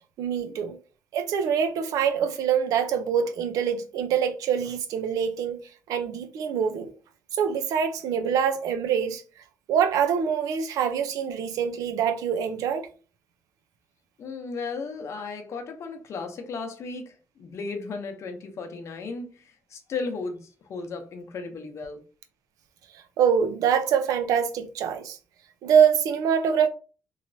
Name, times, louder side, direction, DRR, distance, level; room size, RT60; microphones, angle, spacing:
voice 1, 0.2-0.8 1.1-5.6 5.9-6.9 7.3-9.2 9.7-12.9 23.2-25.2 25.6-26.7, right 7 dB, 85° right, 0.5 m, -24 dB
voice 2, 14.2-22.0, left 4 dB, 55° left, 0.7 m, -35 dB
3.1 x 2.8 x 2.6 m
cardioid pair, 115°, 6 cm